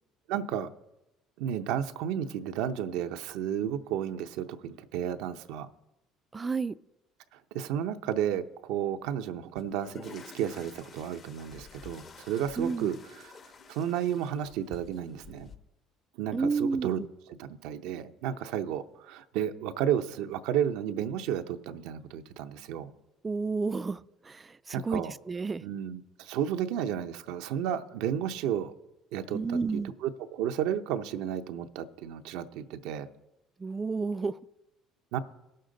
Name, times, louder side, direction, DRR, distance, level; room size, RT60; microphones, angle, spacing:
voice 1, 0.3-0.7 1.4-5.7 7.3-13.3 13.7-15.5 16.2-17.0 17.4-22.9 24.7-25.1 25.6-28.7 29.1-33.1 35.1-35.2, right 9 dB, 75° right, 0.6 m, -32 dB
voice 2, 6.3-6.7 12.6-12.9 16.3-17.1 23.2-25.7 29.3-29.9 33.6-34.4, right 4 dB, 25° right, 0.4 m, -31 dB
sound 1, 9.6-15.6, left 5 dB, 45° left, 1.1 m, -50 dB
17.5 x 6.6 x 3.9 m
supercardioid pair, 70°, 0 cm